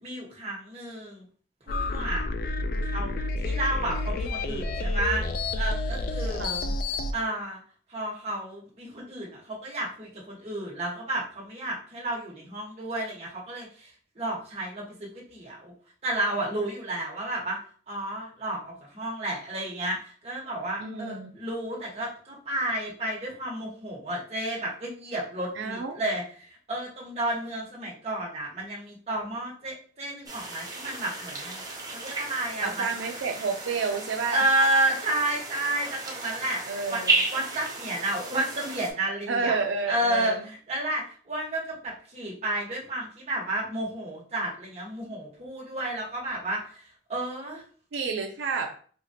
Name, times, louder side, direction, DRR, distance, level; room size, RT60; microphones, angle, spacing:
voice 1, 0.0-1.2 1.7-2.3 2.8-5.2 5.5-6.5 7.1-7.6 7.9-13.9 14.1-15.7 16.0-17.6 17.9-31.6 31.9-32.9 34.3-36.6 36.9-37.0 37.3-39.6 39.8-47.6, right 1 dB, 35° right, -4 dB, 1.3 m, -31 dB
sound 1, 1.7-7.1, left 2 dB, 50° left, 0.3 m, -29 dB
voice 2, 6.4-6.7 20.8-21.3 25.5-26.0 32.6-34.4 36.7-37.2 39.3-40.5 47.9-48.8, right 4 dB, 85° right, 3 dB, 0.5 m, -30 dB
sound 2, 30.3-38.9, right 3 dB, 20° right, 0.7 m, -33 dB
4.4 x 2.4 x 2.7 m, 0.44 s
head